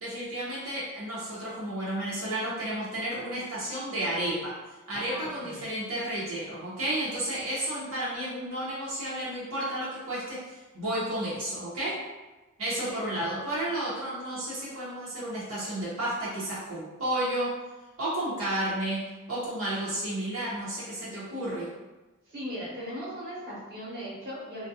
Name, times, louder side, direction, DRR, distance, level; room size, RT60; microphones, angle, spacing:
voice 1, 0.0-4.6 4.9-12.0 12.6-17.6 18.0-21.7, right 1 dB, 80° right, -9 dB, 0.8 m, -32 dB
voice 2, 4.9-5.6 12.9-13.3 22.3-24.7, equal, 50° right, -8 dB, 1.0 m, -39 dB
2.3 x 2.2 x 2.7 m, 1.1 s
head